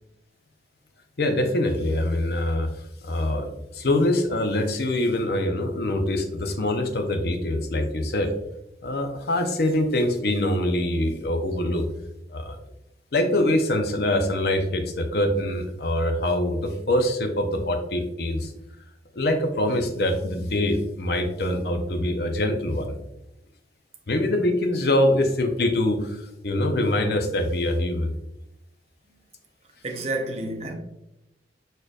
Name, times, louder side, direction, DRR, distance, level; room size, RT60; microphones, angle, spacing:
voice 1, 1.2-8.3 8.8-11.8 12.3-12.6 13.1-18.5 19.1-23.0 24.1-28.1, left 1 dB, 60° left, 0.6 m, -24 dB
voice 2, 29.8-30.7, right 2 dB, 35° right, 0.6 m, -29 dB
4.9 x 4.4 x 2.3 m
head